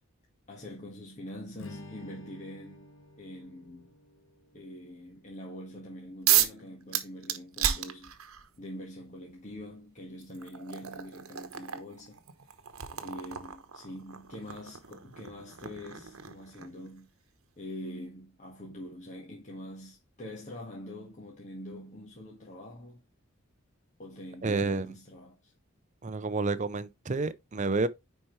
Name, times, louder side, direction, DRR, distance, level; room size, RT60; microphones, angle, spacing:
voice 1, 0.5-2.9 3.2-3.9 4.5-8.1 8.6-12.2 12.9-17.1 17.6-23.0 24.0-25.5, left 1 dB, 35° left, 1.7 m, -44 dB
Strum, 1.6-6.0, left 2 dB, 60° left, 1.4 m, -51 dB
sound 1, 6.3-6.6 6.9-8.5 9.6-9.7 10.2-16.9, right 11 dB, 75° right, 1.0 m, -32 dB
voice 2, 24.4-24.9 26.0-27.9, right 3 dB, 35° right, 0.5 m, -29 dB
9.9 x 4.5 x 3.2 m
head